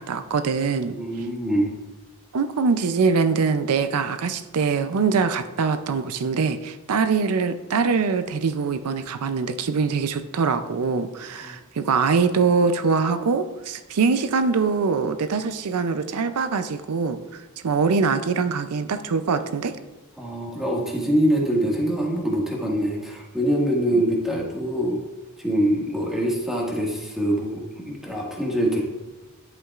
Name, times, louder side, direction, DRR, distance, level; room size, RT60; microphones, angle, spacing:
voice 1, 0.0-1.0 2.3-19.8, right 5 dB, 80° right, 10 dB, 0.5 m, -23 dB
voice 2, 0.9-1.7 11.3-11.6 20.2-25.0 25.4-28.8, right 1 dB, ahead, -3 dB, 1.8 m, -24 dB
10.5 x 8.3 x 2.4 m, 1.2 s
head